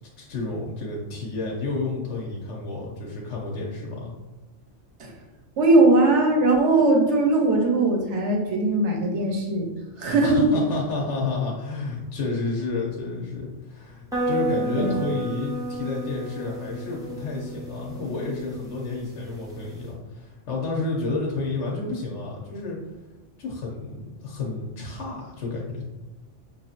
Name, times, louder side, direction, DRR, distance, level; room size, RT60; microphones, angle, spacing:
voice 1, 0.2-4.1 10.0-22.8 23.4-25.8, left 3 dB, 70° left, -2 dB, 1.1 m, -30 dB
voice 2, 5.6-9.7 10.0-10.4 14.8-14.9, right 2 dB, 70° right, 1 dB, 1.1 m, -20 dB
sound 1, 14.1-19.9, right 1 dB, 5° right, 0.5 m, -32 dB
5.3 x 2.7 x 2.4 m, 1.0 s
omnidirectional pair, 1.3 m